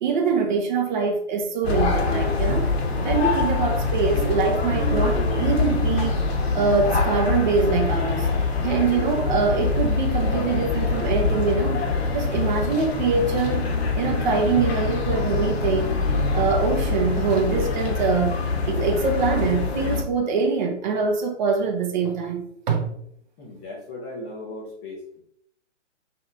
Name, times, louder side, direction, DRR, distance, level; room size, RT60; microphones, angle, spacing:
voice 1, 0.0-2.7 3.0-6.2 6.5-8.3 8.6-11.8 12.1-13.7 14.0-16.0 16.3-18.4 18.7-22.8, right 5 dB, 40° right, 3 dB, 1.0 m, -24 dB
sound 1, 1.6-20.0, left 3 dB, 55° left, 1.1 m, -24 dB
voice 2, 23.4-25.2, left 2 dB, 15° left, -5 dB, 0.6 m, -37 dB
4.0 x 2.7 x 4.6 m, 0.72 s
hypercardioid pair, 145°, 37 cm